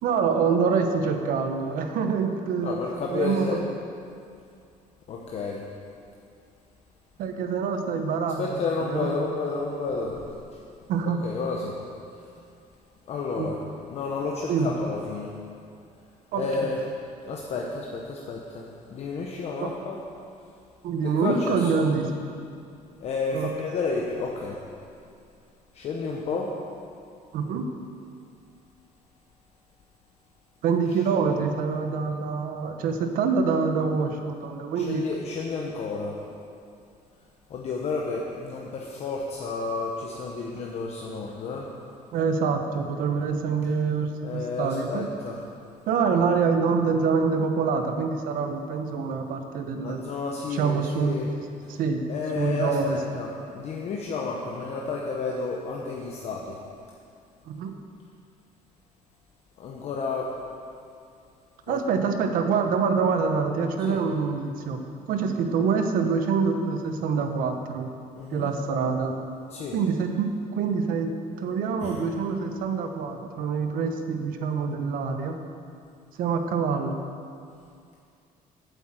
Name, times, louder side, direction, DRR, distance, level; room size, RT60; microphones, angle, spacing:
voice 1, 0.0-2.8 3.1-3.6 7.2-9.1 10.9-11.2 13.4-13.5 14.5-14.7 16.3-16.7 19.6-19.7 20.8-22.1 23.3-23.5 27.3-27.7 30.6-35.0 42.1-45.1 45.9-50.0 50.5-51.1 51.8-52.0 52.3-53.0 57.4-57.8 61.7-64.8 65.1-67.9 68.3-69.1 69.7-75.4 76.2-77.0, right 5 dB, 70° right, 6 dB, 1.0 m, -26 dB
voice 2, 2.6-3.6 5.1-5.6 8.4-10.2 11.2-11.7 13.1-13.6 13.9-15.3 16.3-16.8 17.2-20.0 21.0-21.8 23.0-24.6 25.7-26.5 34.8-36.1 37.5-41.7 44.2-45.4 49.8-51.3 51.7-51.8 52.1-56.6 59.6-60.3 61.7-61.8 63.8-64.0 68.1-68.5 69.5-69.8 71.8-72.1, left 4 dB, 45° left, -1 dB, 1.0 m, -31 dB
8.5 x 8.1 x 7.6 m, 2.4 s
cardioid pair, 160°, 15 cm